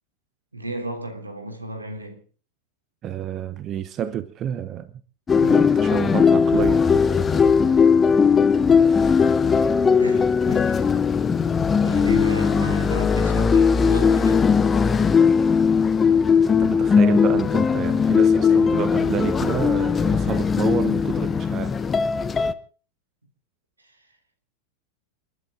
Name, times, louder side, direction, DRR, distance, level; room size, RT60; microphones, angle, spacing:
voice 1, 0.5-2.2 10.0-10.9 11.8-14.5 23.8-24.0, right 1 dB, 80° right, 3.2 m, -34 dB
voice 2, 3.0-4.9 5.4-6.8 16.4-21.8, right 10 dB, 30° right, 0.9 m, -29 dB
sound 1, 5.3-22.5, left 6 dB, 20° left, 0.9 m, -19 dB
29.5 x 11.5 x 3.8 m
figure-of-eight pair, 90°, 0 cm